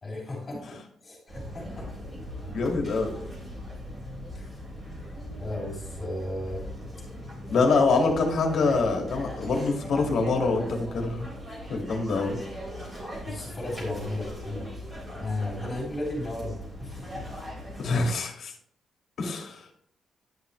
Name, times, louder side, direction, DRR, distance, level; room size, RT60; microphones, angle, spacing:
voice 1, 0.0-1.9 4.3-4.6 5.4-6.7 13.2-14.7 15.1-17.3, left 1 dB, 25° left, -3 dB, 3.7 m, -35 dB
sound 1, 1.3-18.1, equal, 20° right, 3.4 m, -39 dB
voice 2, 2.5-3.2 7.5-11.3 11.7-12.4 17.8-18.5 19.2-19.7, left 3 dB, 55° left, 3 dB, 2.0 m, -25 dB
10.5 x 5.7 x 3.2 m, 0.67 s
wide cardioid pair, 170°, 0 cm